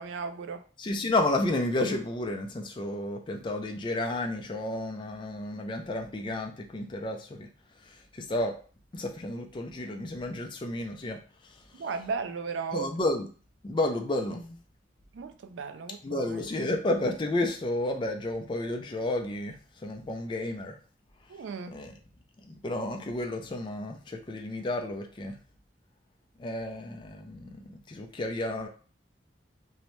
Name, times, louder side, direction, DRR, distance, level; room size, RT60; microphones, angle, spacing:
voice 1, 0.0-0.6 11.8-12.9 15.1-16.3 21.3-21.7, right 5 dB, 85° right, 9 dB, 0.3 m, -35 dB
voice 2, 0.8-7.5 7.9-8.5 8.9-11.2 11.4-11.6 12.7-13.3 13.6-14.6 16.0-20.8 21.7-22.0 22.4-25.4 26.4-28.7, left 1 dB, 25° left, 3 dB, 0.3 m, -31 dB
2.7 x 2.1 x 3.0 m, 0.39 s
head